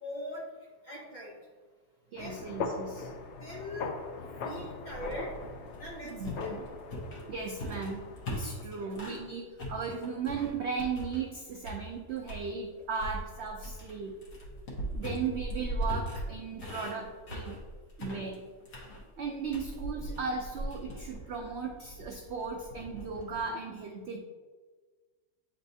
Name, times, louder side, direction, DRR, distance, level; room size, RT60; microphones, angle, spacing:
voice 1, 0.0-0.4 0.8-1.4 2.2-2.4 3.4-3.9 4.4-5.3 5.8-6.6 8.8-9.0, left 1 dB, 30° left, -5 dB, 1.3 m, -41 dB
voice 2, 2.1-3.1 6.0-6.6 7.3-8.0 8.3-14.1 14.9-17.6 18.0-18.4 19.2-24.2, right 5 dB, 70° right, 3 dB, 0.6 m, -36 dB
sound 1, 2.2-8.6, left 4 dB, 65° left, 0.7 m, -40 dB
sound 2, 4.9-9.3 9.6-11.3 11.6-12.5 12.9-23.4, equal, 80° left, 1.8 m, -40 dB
8.7 x 4.1 x 2.6 m, 1.4 s
omnidirectional pair, 1.7 m